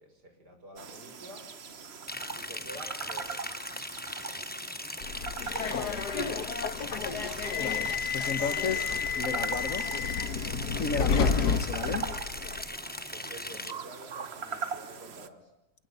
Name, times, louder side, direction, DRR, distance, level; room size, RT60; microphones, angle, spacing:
voice 1, 0.0-1.5 2.3-3.4 13.1-15.5, right 1 dB, 80° right, 6.6 m, -49 dB
sound 1, 0.8-15.3, right 6 dB, 45° right, 1.3 m, -41 dB
Liquid, 2.1-13.7, left 1 dB, 10° left, 0.4 m, -39 dB
Subway metro underground, 5.0-12.6, left 6 dB, 75° left, 2.0 m, -31 dB
voice 2, 5.7-6.1 7.6-9.9 10.8-12.2, left 5 dB, 55° left, 1.6 m, -34 dB
28.0 x 20.0 x 8.2 m
omnidirectional pair, 1.7 m